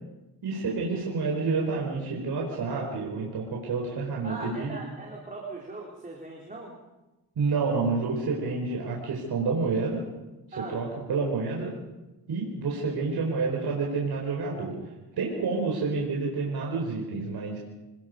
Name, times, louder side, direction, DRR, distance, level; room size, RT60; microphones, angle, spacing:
voice 1, 0.4-4.8 7.4-10.0 10.6-11.7 12.3-14.7 15.1-17.6, right 4 dB, 65° right, -2 dB, 4.8 m, -29 dB
voice 2, 4.2-6.7 10.5-10.8, right 3 dB, 20° right, -2 dB, 4.0 m, -39 dB
27.0 x 20.5 x 5.4 m, 1.1 s
cardioid pair, 100°, 41 cm